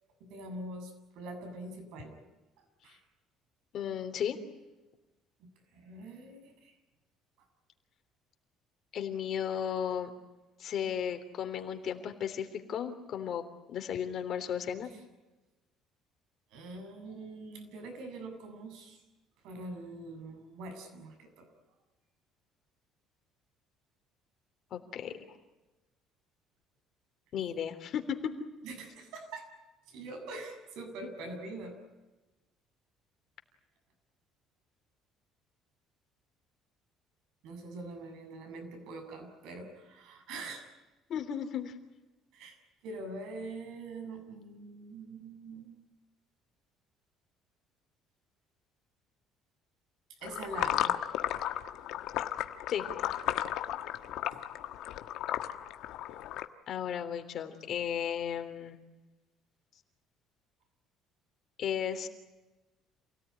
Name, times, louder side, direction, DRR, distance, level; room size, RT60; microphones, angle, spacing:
voice 1, 0.2-2.2 2.6-3.0 5.4-6.8 16.5-19.0 19.4-21.5 28.6-29.5 29.9-31.8 37.4-40.6 42.3-42.6 42.8-45.8 50.2-51.0 54.3-54.4, right 2 dB, 75° right, 5 dB, 7.3 m, -44 dB
voice 2, 3.7-4.4 8.9-10.1 10.6-14.9 24.7-25.2 27.3-28.3 41.1-41.7 52.7-52.9 56.7-58.8 61.6-62.1, left 8 dB, 50° left, 7 dB, 3.4 m, -34 dB
sound 1, 50.2-56.4, left 12 dB, 70° left, 1.4 m, -34 dB
28.5 x 17.5 x 9.8 m, 1.1 s
cardioid pair, 140°, 0 cm